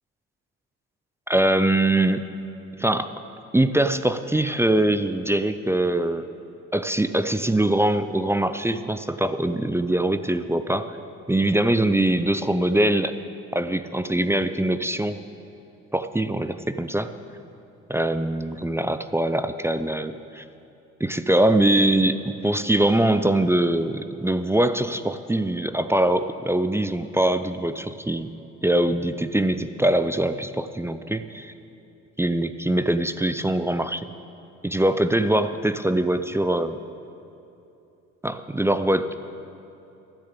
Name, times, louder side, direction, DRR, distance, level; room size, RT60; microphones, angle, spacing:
voice 1, 1.3-2.2 2.8-3.1 3.5-6.3 6.7-11.0 11.3-13.1 13.5-15.2 15.9-17.1 17.9-20.4 21.0-28.3 28.6-31.5 32.2-34.1 34.6-36.8 38.2-39.1, right 1 dB, 5° right, 11 dB, 0.5 m, -22 dB
13.5 x 6.6 x 8.3 m, 2.9 s
hypercardioid pair, 60°, 35 cm